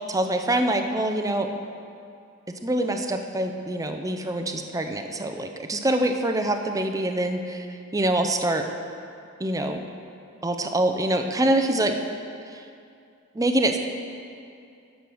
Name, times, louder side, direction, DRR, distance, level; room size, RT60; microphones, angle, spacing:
voice 1, 0.1-1.5 2.6-7.7 7.9-8.7 9.4-9.9 10.4-12.0 12.5-12.6 13.3-13.8, right 1 dB, 15° right, 5 dB, 0.6 m, -25 dB
11.5 x 6.5 x 6.2 m, 2.4 s
head